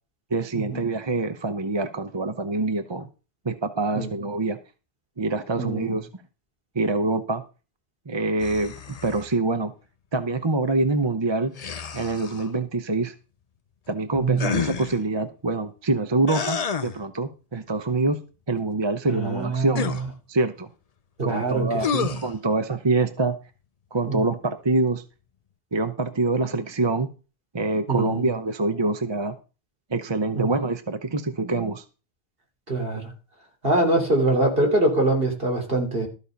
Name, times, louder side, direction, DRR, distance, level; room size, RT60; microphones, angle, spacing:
voice 1, 0.3-3.1 3.4-4.6 5.2-6.1 6.7-7.4 8.1-9.7 10.1-11.5 11.9-13.1 13.9-18.2 18.5-19.9 20.3-20.7 21.2-21.9 22.2-23.4 23.9-25.0 25.7-27.1 27.5-29.3 29.9-31.8, right 3 dB, 25° right, 9 dB, 0.8 m, -25 dB
voice 2, 5.6-5.9 14.2-14.5 19.1-19.9 21.2-21.6 21.9-22.2 24.1-24.2 27.9-28.3 30.3-30.5 32.7-33.1 33.6-36.1, right 2 dB, 60° right, 1 dB, 3.6 m, -24 dB
sound 1, 8.4-9.3 11.5-12.5 14.4-15.0 16.3-17.0 19.7-20.1 21.8-22.3, left 6 dB, 40° left, 0.7 m, -29 dB
13.0 x 6.9 x 5.2 m, 0.33 s
omnidirectional pair, 1.1 m